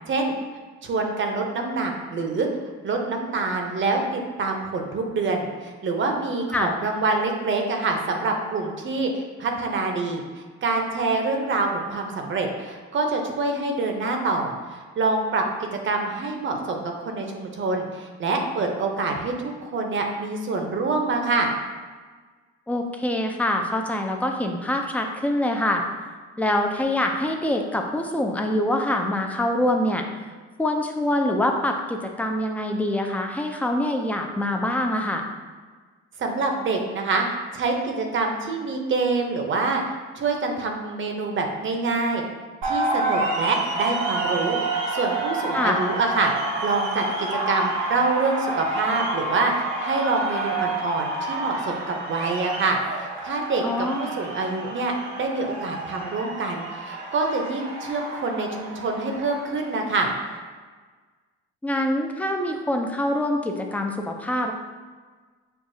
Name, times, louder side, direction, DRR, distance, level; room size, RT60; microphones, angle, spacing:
voice 1, 0.8-2.5 2.8-21.5 36.2-37.3 37.5-39.8 40.2-42.2 42.6-44.6 44.9-60.1, right 3 dB, 40° right, 3 dB, 0.7 m, -26 dB
voice 2, 22.7-25.8 26.4-30.1 30.6-35.3 45.5-45.8 53.6-54.1 61.6-64.5, left 1 dB, 5° left, 3 dB, 0.4 m, -25 dB
sound 1, 42.6-60.4, right 2 dB, 90° right, 0.8 m, -29 dB
6.5 x 2.3 x 2.7 m, 1.4 s
cardioid pair, 100°, 29 cm